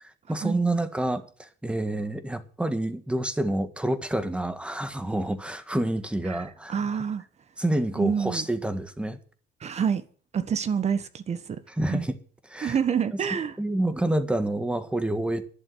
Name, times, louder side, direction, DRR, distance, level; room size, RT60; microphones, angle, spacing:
voice 1, 0.3-6.7 7.6-9.2 11.7-12.1 12.5-12.8 13.6-15.5, right 1 dB, 5° right, 1.6 m, -28 dB
voice 2, 6.7-7.2 8.0-8.4 9.6-10.0 10.3-11.6 11.9-12.0 12.6-13.5, right 7 dB, 40° right, 1.4 m, -27 dB
11.5 x 7.1 x 9.6 m
cardioid pair, 110°, 17 cm